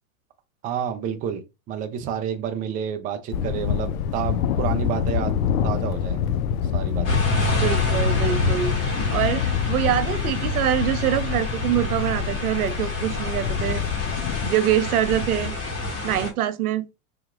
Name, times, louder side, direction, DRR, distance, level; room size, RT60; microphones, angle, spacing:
voice 1, 0.6-5.4 5.6-6.2 6.7-7.2, right 8 dB, 20° right, 0.4 m, -29 dB
Thunder, 3.3-14.5, left 8 dB, 70° left, 0.6 m, -26 dB
sound 1, 7.0-16.3, left 2 dB, 50° left, 1.8 m, -28 dB
voice 2, 7.5-13.8 14.4-15.6 16.0-16.9, right 11 dB, 85° right, 0.6 m, -24 dB
3.7 x 2.7 x 2.3 m
hypercardioid pair, 105°, 43 cm